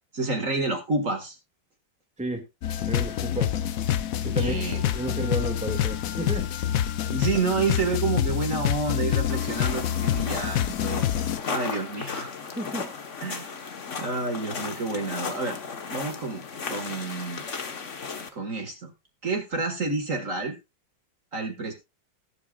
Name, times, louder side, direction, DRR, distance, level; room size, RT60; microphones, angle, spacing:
voice 1, 0.1-1.4 4.4-4.8 7.1-11.0 11.5-12.3 13.2-13.5 14.0-15.6 15.9-16.4 16.7-17.4 18.3-18.9 19.2-20.6 21.3-21.7, right 3 dB, 45° right, 4 dB, 2.1 m, -29 dB
sound 1, 2.6-11.4, left 10 dB, 65° left, 0.9 m, -27 dB
voice 2, 2.9-3.5 4.2-4.6 4.9-6.4 12.6-12.9, right 1 dB, 5° right, 4 dB, 1.9 m, -32 dB
sound 2, 9.3-18.3, left 5 dB, 45° left, 1.5 m, -35 dB
19.0 x 8.1 x 2.4 m, 0.24 s
omnidirectional pair, 2.0 m